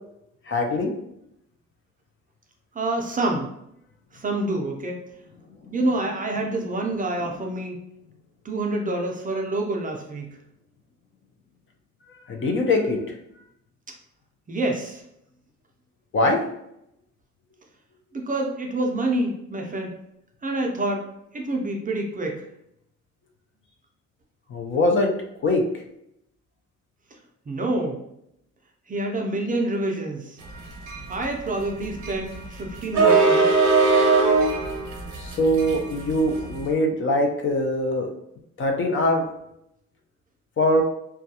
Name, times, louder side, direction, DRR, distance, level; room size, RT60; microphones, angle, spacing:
voice 1, 0.5-0.9 5.6-5.7 12.1-13.0 16.1-16.4 24.5-25.1 25.4-25.6 35.2-38.1 38.6-39.2 40.6-40.8, left 1 dB, 40° left, 2 dB, 0.5 m, -22 dB
voice 2, 2.7-3.5 4.1-5.0 5.7-7.8 8.4-10.4 14.5-15.0 18.1-19.9 20.4-21.1 21.3-22.4 27.5-28.0 28.9-30.4 31.1-33.5, right 2 dB, 30° right, 1 dB, 0.4 m, -27 dB
sound 1, 30.5-36.7, right 4 dB, 75° right, 0.7 m, -21 dB
2.2 x 2.2 x 2.7 m, 0.78 s
cardioid pair, 90°, 30 cm